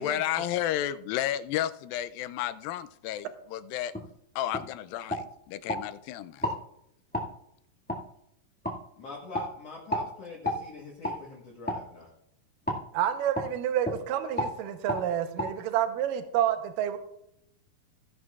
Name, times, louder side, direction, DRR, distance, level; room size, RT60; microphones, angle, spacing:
voice 1, 0.0-3.9 4.4-6.5, left 12 dB, 85° left, 12 dB, 2.3 m, -32 dB
sound 1, 3.9-4.1 4.5-4.7 5.1-5.8 6.4-6.6 7.1-7.3 7.9-8.0 8.6-8.8 9.3-9.5 9.9-10.1 10.4-10.6 11.0-11.2 11.6-11.8 12.7-12.8 13.3-13.5 13.8-14.0 14.4-14.5 14.9-15.0 15.4-15.5, left 1 dB, 10° left, 0.6 m, -31 dB
voice 2, 9.0-12.1, left 3 dB, 55° left, -2 dB, 2.1 m, -44 dB
voice 3, 12.9-17.0, right 10 dB, 75° right, 8 dB, 2.4 m, -29 dB
16.5 x 11.0 x 2.4 m, 0.77 s
omnidirectional pair, 4.2 m